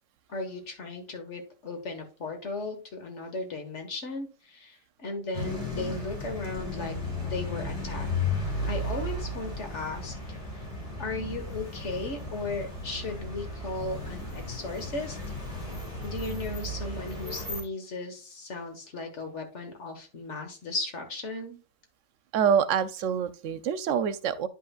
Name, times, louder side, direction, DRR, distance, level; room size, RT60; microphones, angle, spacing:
voice 1, 0.3-8.1 8.7-10.1 10.5-10.7 11.0-15.2 16.0-21.6, left 2 dB, 70° left, 1.8 m, -36 dB
sound 1, 5.3-17.6, left 2 dB, 30° left, 2.8 m, -34 dB
voice 2, 22.3-24.5, right 7 dB, 85° right, 1.0 m, -26 dB
9.6 x 5.6 x 2.4 m
omnidirectional pair, 1.3 m